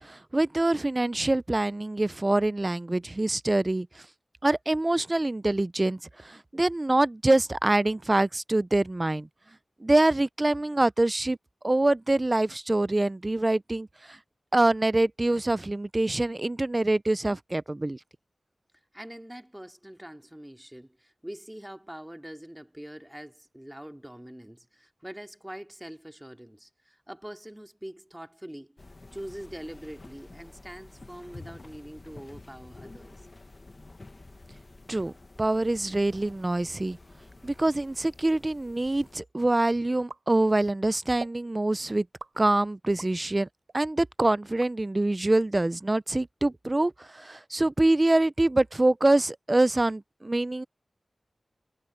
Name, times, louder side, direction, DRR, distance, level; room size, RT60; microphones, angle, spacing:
voice 1, 0.0-4.0 4.4-9.3 9.8-11.4 11.6-14.2 14.5-18.0 34.9-35.1 35.4-37.0 37.4-42.1 42.4-43.5 43.7-50.6, right 2 dB, 25° right, 0.4 m, -25 dB
voice 2, 18.9-28.8 29.1-33.3, equal, 10° right, 2.5 m, -43 dB
sound 1, 28.8-39.2, left 2 dB, 40° left, 1.3 m, -50 dB
sound 2, 40.1-40.8 41.2-41.5 42.2-43.2 43.7-44.8, right 3 dB, 55° right, 5.0 m, -43 dB
wide cardioid pair, 100°, 0 cm